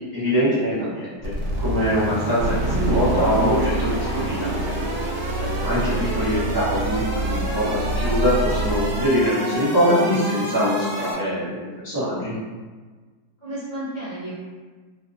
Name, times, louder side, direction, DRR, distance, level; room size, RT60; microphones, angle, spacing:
voice 1, 0.0-5.0 5.6-12.3, equal, 35° right, -13 dB, 0.3 m, -23 dB
sound 1, 1.2-11.1, right 1 dB, 90° right, 1.3 m, -30 dB
sound 2, 2.4-9.1, right 1 dB, 65° left, 0.9 m, -26 dB
voice 2, 5.4-6.0 13.4-14.3, right 1 dB, 35° left, -11 dB, 0.8 m, -33 dB
2.8 x 2.1 x 2.4 m, 1.4 s
omnidirectional pair, 1.7 m